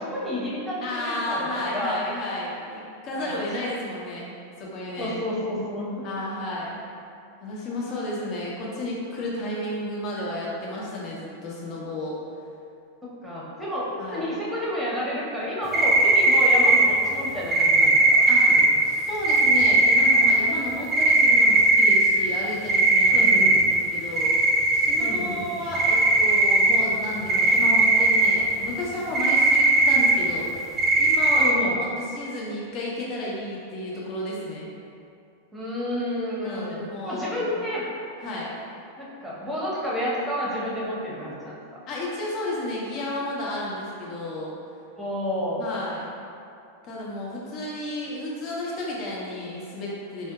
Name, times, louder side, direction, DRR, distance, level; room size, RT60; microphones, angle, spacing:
voice 1, 0.0-2.0 3.1-3.5 5.0-6.1 13.0-13.8 14.1-18.6 23.1-23.5 25.0-25.4 31.3-31.8 35.5-36.8 37.1-37.9 39.0-41.6 45.0-45.7, equal, 5° right, -7 dB, 0.9 m, -30 dB
voice 2, 0.8-4.3 4.6-5.2 6.0-6.9 7.4-12.2 14.0-14.2 18.3-18.5 18.8-23.3 23.7-24.3 24.7-30.5 31.0-34.7 36.4-37.6 38.2-38.5 41.9-44.6 45.6-46.0 46.8-50.3, left 1 dB, 35° left, -5 dB, 0.8 m, -32 dB
sound 1, 15.7-16.8 17.5-18.7 19.2-20.3 20.9-22.1 22.7-23.6 24.2-25.1 25.4-25.5 25.7-26.8 27.3-28.3 29.1-30.1 30.8-31.5, right 2 dB, 25° right, 0.4 m, -18 dB
4.6 x 2.6 x 2.3 m, 2.5 s
figure-of-eight pair, 90°, 0 cm